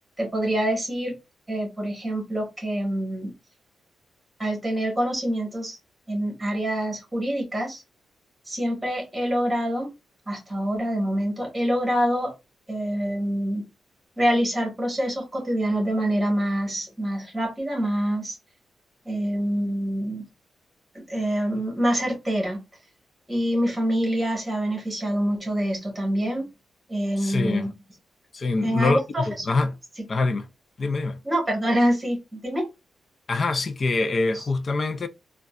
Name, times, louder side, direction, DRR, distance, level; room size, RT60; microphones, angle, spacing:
voice 1, 0.2-1.1 1.5-3.3 4.4-5.8 6.1-7.8 8.5-9.9 10.3-12.3 12.7-13.7 14.2-18.4 19.0-20.2 20.9-22.6 23.3-26.5 26.9-27.7 28.6-29.6 31.2-32.7 34.3-34.4, equal, 15° right, 1.4 m, -26 dB
voice 2, 27.2-27.7 28.3-29.7 30.1-30.5 30.8-31.2 33.3-35.1, left 3 dB, 35° left, 0.4 m, -25 dB
3.7 x 2.2 x 2.4 m
wide cardioid pair, 145°, 0 cm